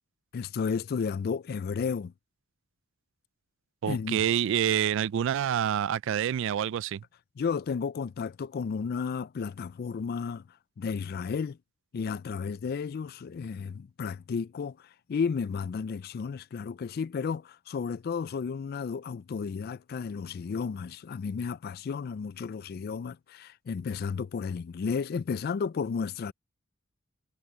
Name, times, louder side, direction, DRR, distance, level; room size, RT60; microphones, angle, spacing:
voice 1, 0.3-2.1 3.9-4.2 7.4-10.4 10.8-11.6 11.9-14.8 15.1-26.3, left 5 dB, 45° left, 0.3 m, -33 dB
voice 2, 3.8-7.0, right 9 dB, 65° right, 0.3 m, -27 dB
head